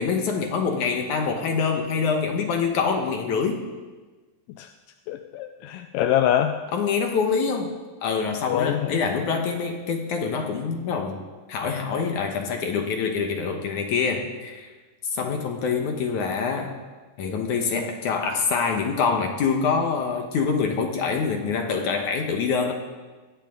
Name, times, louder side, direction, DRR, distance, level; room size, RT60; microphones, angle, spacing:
voice 1, 0.0-3.6 6.7-7.7 8.0-11.2 11.5-14.7 15.1-16.7 17.2-22.7, left 5 dB, 65° left, 3 dB, 2.3 m, -25 dB
voice 2, 5.1-6.6 8.5-9.0, left 11 dB, 80° left, 7 dB, 2.0 m, -24 dB
21.5 x 17.5 x 3.8 m, 1.3 s
omnidirectional pair, 4.5 m